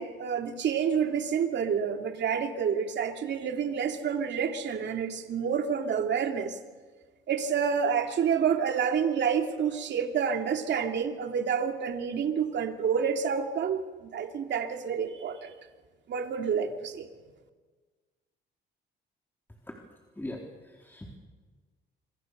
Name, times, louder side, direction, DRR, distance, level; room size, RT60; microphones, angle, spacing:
voice 1, 0.0-6.6 7.3-13.8 14.1-15.5 16.1-17.1, right 7 dB, 65° right, 5 dB, 2.7 m, -28 dB
voice 2, 20.2-21.2, left 1 dB, 10° left, 0 dB, 4.0 m, -41 dB
27.0 x 24.0 x 6.7 m, 1.4 s
cardioid pair, 90°, 20 cm